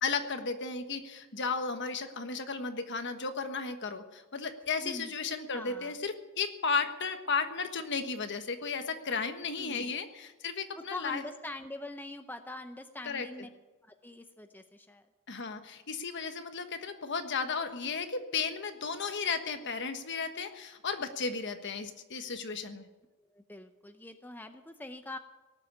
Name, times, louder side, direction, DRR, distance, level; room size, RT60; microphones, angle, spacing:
voice 1, 0.0-11.2 13.0-13.3 15.3-22.9, left 5 dB, 55° left, 7 dB, 1.4 m, -34 dB
voice 2, 4.8-5.1 5.5-6.0 9.6-9.9 10.7-13.5 13.8-15.0 23.3-25.2, left 2 dB, 10° left, 7 dB, 0.6 m, -43 dB
18.5 x 7.6 x 9.8 m, 1.2 s
head